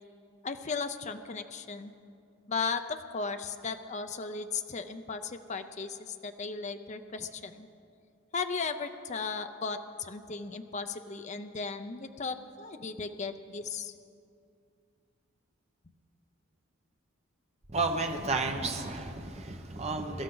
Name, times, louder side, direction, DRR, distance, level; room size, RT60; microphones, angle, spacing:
voice 1, 0.4-1.9 2.5-7.7 8.3-13.9, left 4 dB, 35° left, 8 dB, 0.6 m, -36 dB
voice 2, 17.7-20.2, right 3 dB, 30° right, 3 dB, 1.0 m, -32 dB
23.0 x 12.5 x 3.9 m, 2.4 s
head